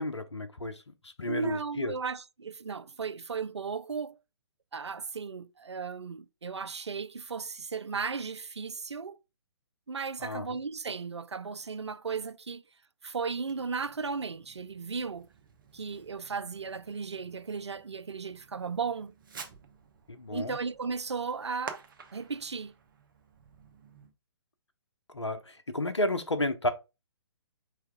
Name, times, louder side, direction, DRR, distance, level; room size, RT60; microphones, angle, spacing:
voice 1, 0.0-1.9 10.2-10.6 20.1-20.6 25.1-26.7, left 1 dB, 80° left, 0.8 m, -32 dB
voice 2, 1.3-4.2 4.7-9.2 9.9-12.6 13.0-15.3 15.7-19.1 20.3-21.8 22.1-22.7, right 5 dB, 75° right, 0.4 m, -35 dB
Fireworks, 13.4-24.1, right 5 dB, 50° right, 0.9 m, -51 dB
4.5 x 3.3 x 3.4 m
figure-of-eight pair, 130°, 14 cm